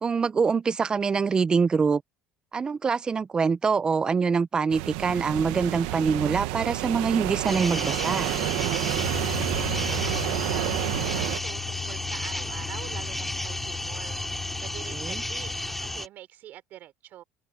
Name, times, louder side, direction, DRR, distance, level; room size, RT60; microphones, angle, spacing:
voice 1, 0.0-2.0 2.5-8.3 15.0-15.2, right 5 dB, 25° right, 0.6 m, -25 dB
Ocean sounds, 4.7-11.4, right 19 dB, 85° right, 1.1 m, -29 dB
sound 1, 7.4-16.1, left 1 dB, 5° left, 2.6 m, -33 dB
sound 2, 9.0-16.0, left 11 dB, 45° left, 7.5 m, -37 dB
voice 2, 9.3-14.2 14.6-17.2, right 13 dB, 55° right, 4.8 m, -44 dB
cardioid pair, 125°, 4 cm